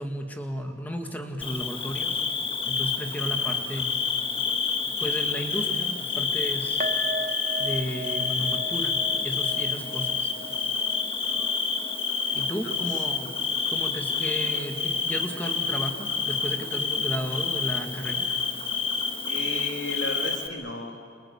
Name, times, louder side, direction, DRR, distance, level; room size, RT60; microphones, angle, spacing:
voice 1, 0.0-2.2 2.7-4.0 5.0-6.8 7.6-10.3 12.3-13.3 13.7-18.3, equal, 10° left, 3 dB, 2.1 m, -34 dB
Bird / Cricket, 1.4-20.5, left 5 dB, 30° left, 1.5 m, -28 dB
sound 1, 6.8-14.0 14.3-14.5 14.8-14.9, right 2 dB, 35° right, 1.3 m, -38 dB
voice 2, 11.2-11.7 12.2-12.4 12.6-12.7 19.3-21.1, left 2 dB, 80° left, 2 dB, 3.0 m, -35 dB
28.0 x 27.5 x 7.2 m, 2.3 s
head